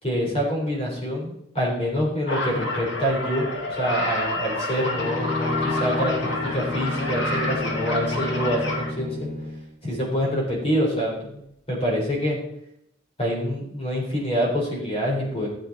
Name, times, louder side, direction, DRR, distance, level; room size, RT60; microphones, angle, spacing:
voice 1, 0.0-9.3 9.8-11.4 11.7-12.4 13.2-15.5, equal, 30° left, -3 dB, 4.1 m, -26 dB
sound 1, 2.3-8.9, left 1 dB, 70° left, 2.3 m, -29 dB
Bowed string instrument, 4.9-9.7, left 2 dB, 50° left, 4.6 m, -31 dB
14.0 x 7.7 x 4.3 m, 0.75 s
head